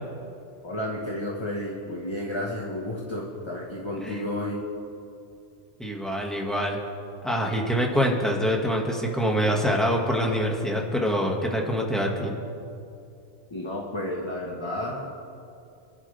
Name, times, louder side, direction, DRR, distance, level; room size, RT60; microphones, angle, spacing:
voice 1, 0.6-4.6 13.5-15.2, left 1 dB, 20° left, -3 dB, 1.7 m, -32 dB
voice 2, 5.8-6.8 7.2-12.4, equal, ahead, -1 dB, 2.1 m, -25 dB
28.5 x 12.5 x 3.6 m, 2.5 s
omnidirectional pair, 1.3 m